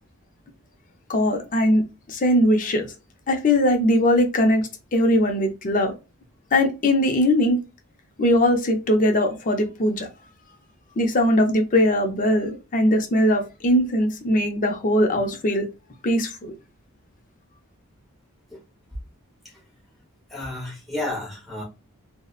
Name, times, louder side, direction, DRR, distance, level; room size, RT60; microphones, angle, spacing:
voice 1, 1.1-1.8 2.1-2.9 3.3-4.6 4.9-5.9 6.5-7.6 8.2-10.1 11.0-15.7 16.0-16.5, left 1 dB, 35° left, 0.5 m, -20 dB
voice 2, 20.3-21.6, left 2 dB, ahead, 0.7 m, -32 dB
2.7 x 2.0 x 2.3 m
head